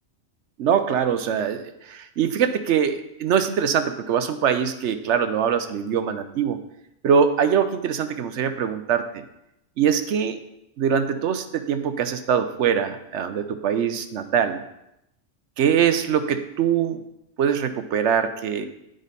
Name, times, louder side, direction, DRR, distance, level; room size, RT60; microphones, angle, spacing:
voice 1, 0.6-6.6 7.0-9.0 9.8-10.4 10.8-14.6 15.6-17.0 17.4-18.7, right 7 dB, 70° right, 10 dB, 0.9 m, -23 dB
10.5 x 5.1 x 4.1 m, 0.84 s
omnidirectional pair, 1.3 m